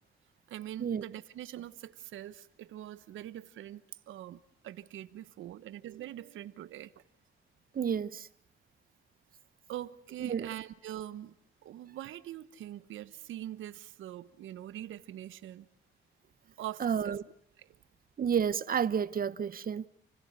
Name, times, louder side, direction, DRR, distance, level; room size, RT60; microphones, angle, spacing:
voice 1, 0.5-7.0 9.7-11.3 11.6-15.7 16.5-17.2 17.6-17.8, right 12 dB, 80° right, 1.2 m, -43 dB
voice 2, 7.7-8.3 10.2-10.5 16.8-17.2 18.2-19.9, right 7 dB, 45° right, 1.0 m, -30 dB
29.5 x 16.0 x 9.6 m
cardioid pair, 90°, 20 cm